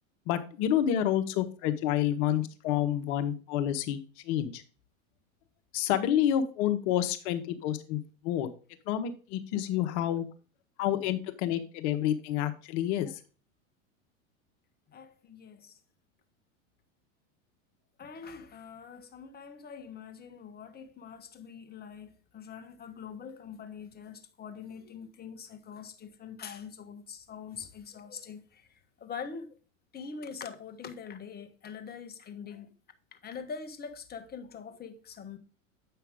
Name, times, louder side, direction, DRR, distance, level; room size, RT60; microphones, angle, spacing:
voice 1, 0.3-4.6 5.7-8.5 8.9-10.2 10.8-13.2, left 11 dB, 55° left, 1.1 m, -29 dB
voice 2, 14.9-15.8 18.0-28.7 29.0-29.6 29.9-32.7 33.1-35.4, left 6 dB, 25° left, 1.2 m, -44 dB
8.6 x 5.7 x 3.5 m
hypercardioid pair, 105°, 41 cm